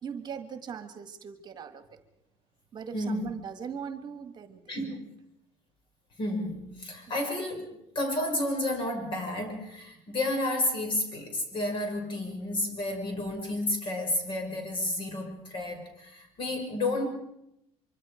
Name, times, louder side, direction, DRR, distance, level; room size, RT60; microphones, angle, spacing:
voice 1, 0.0-2.0 2.7-4.8 7.1-7.2, right 7 dB, 40° right, 9 dB, 1.6 m, -40 dB
voice 2, 2.9-3.3 4.7-5.0 6.2-7.7 7.9-17.1, left 1 dB, 45° left, 4 dB, 6.2 m, -31 dB
24.5 x 24.5 x 5.0 m, 0.82 s
cardioid pair, 130°, 12 cm